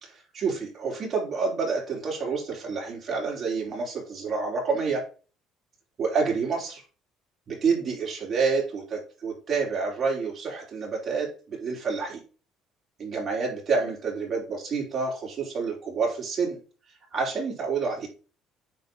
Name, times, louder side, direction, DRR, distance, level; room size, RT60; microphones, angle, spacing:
voice 1, 0.0-5.0 6.0-6.8 7.5-12.2 13.0-16.6 17.1-18.1, right 4 dB, 35° right, -2 dB, 4.2 m, -28 dB
9.2 x 3.9 x 4.0 m, 0.35 s
cardioid pair, 115°, 0 cm